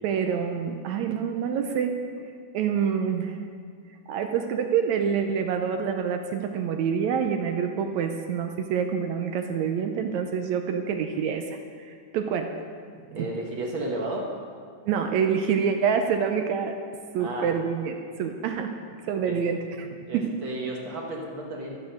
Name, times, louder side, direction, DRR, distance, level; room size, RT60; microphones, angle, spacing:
voice 1, 0.0-2.3 2.5-3.4 4.1-12.6 13.1-13.3 14.9-16.8 17.1-18.7 19.0-19.9 20.1-20.3, right 7 dB, 80° right, 5 dB, 1.8 m, -27 dB
voice 2, 13.1-14.3 17.2-17.5 19.3-19.4 20.1-21.9, right 2 dB, 55° right, -1 dB, 1.5 m, -33 dB
14.0 x 7.2 x 6.4 m, 2.1 s
omnidirectional pair, 3.5 m